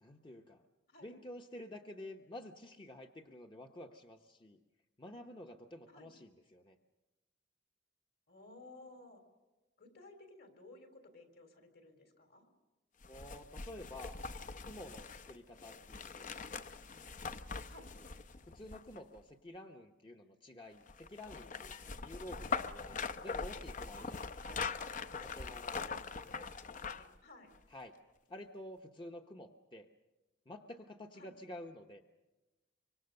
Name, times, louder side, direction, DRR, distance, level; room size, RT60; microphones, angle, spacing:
voice 1, 0.0-0.6 1.0-4.6 5.0-6.8 13.1-14.2 14.6-16.3 18.5-24.3 25.2-26.0 27.7-28.0 28.3-29.9 30.5-32.0, left 1 dB, 25° left, 3 dB, 1.0 m, -50 dB
voice 2, 8.3-9.2 9.8-12.5 17.7-17.9 23.9-24.7 25.7-26.2 26.7-27.5 31.1-31.3, left 2 dB, 60° left, 6 dB, 3.7 m, -56 dB
sound 1, 13.0-19.2 20.9-27.2 27.5-27.6, left 5 dB, 45° left, 0.7 m, -42 dB
25.0 x 24.5 x 6.7 m, 1.1 s
head